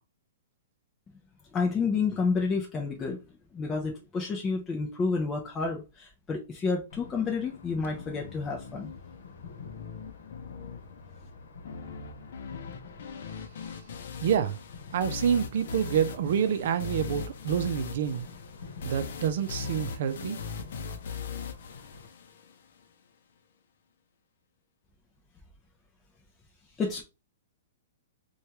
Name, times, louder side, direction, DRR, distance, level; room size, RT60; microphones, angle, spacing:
voice 1, 1.5-3.2 3.5-8.9 26.8-27.0, left 4 dB, 15° left, 0.4 m, -30 dB
sound 1, 6.9-22.1, left 4 dB, 80° left, 0.9 m, -48 dB
sound 2, 7.8-22.8, left 5 dB, 65° left, 0.5 m, -40 dB
voice 2, 14.2-14.6 14.9-18.3 18.8-20.4, right 8 dB, 60° right, 0.5 m, -27 dB
3.2 x 2.3 x 2.8 m
hypercardioid pair, 160°, 0 cm